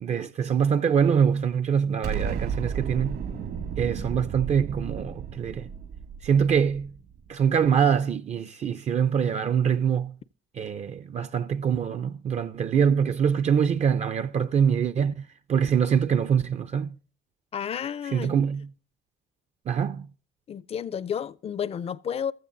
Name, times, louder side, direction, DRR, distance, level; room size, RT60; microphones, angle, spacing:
voice 1, 0.0-3.2 3.8-5.7 6.2-7.0 7.3-10.1 10.5-16.9 18.1-18.7 19.7-20.1, right 7 dB, 40° right, 0.5 m, -24 dB
Explosion, 2.0-7.2, right 7 dB, 70° right, 2.1 m, -33 dB
voice 2, 17.5-18.4 20.5-22.3, left 8 dB, 35° left, 0.5 m, -31 dB
15.5 x 13.0 x 2.6 m
cardioid pair, 140°, 17 cm